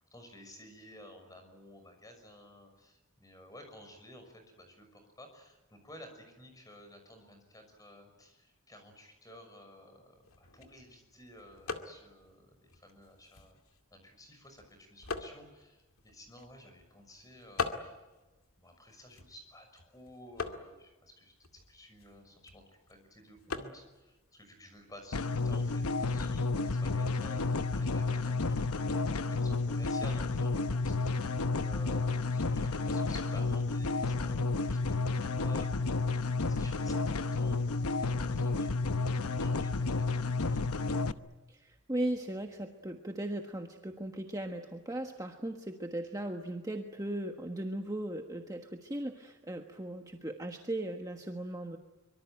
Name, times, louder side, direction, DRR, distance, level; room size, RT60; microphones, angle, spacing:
voice 1, 0.1-17.9 18.6-40.3, left 1 dB, 15° left, 6 dB, 6.1 m, -54 dB
sound 1, 10.1-25.7, left 4 dB, 70° left, 2.3 m, -45 dB
sound 2, 25.1-41.1, left 3 dB, 90° left, 0.9 m, -31 dB
voice 2, 41.5-51.8, right 1 dB, 15° right, 3 dB, 1.4 m, -37 dB
24.5 x 24.0 x 9.2 m, 1.1 s
head